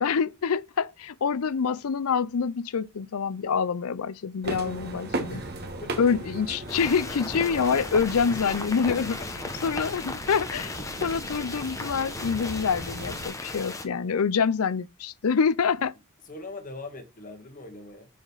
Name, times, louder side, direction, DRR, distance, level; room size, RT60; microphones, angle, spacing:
voice 1, 0.0-5.4 6.0-9.2 9.6-15.9, left 6 dB, 75° left, 0.5 m, -26 dB
sound 1, 4.4-13.3, right 2 dB, 45° right, 1.3 m, -38 dB
voice 2, 5.3-5.9 8.9-9.3 16.2-18.1, left 2 dB, 35° left, 1.6 m, -42 dB
sound 2, 6.7-13.9, left 2 dB, 15° left, 0.9 m, -36 dB
6.5 x 5.1 x 5.5 m
head